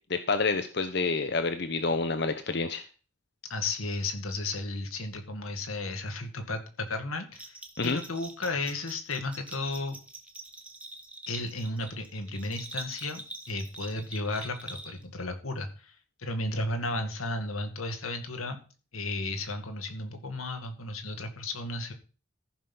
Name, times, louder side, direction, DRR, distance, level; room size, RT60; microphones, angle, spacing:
voice 1, 0.1-2.8 7.8-8.0, left 3 dB, 55° left, 9 dB, 0.9 m, -28 dB
voice 2, 3.5-7.6 7.8-10.0 11.3-18.6 18.9-21.9, left 2 dB, 90° left, 6 dB, 2.1 m, -34 dB
Bell, 7.3-15.2, right 2 dB, 5° right, 1.2 m, -44 dB
14.0 x 6.3 x 5.5 m, 0.36 s
head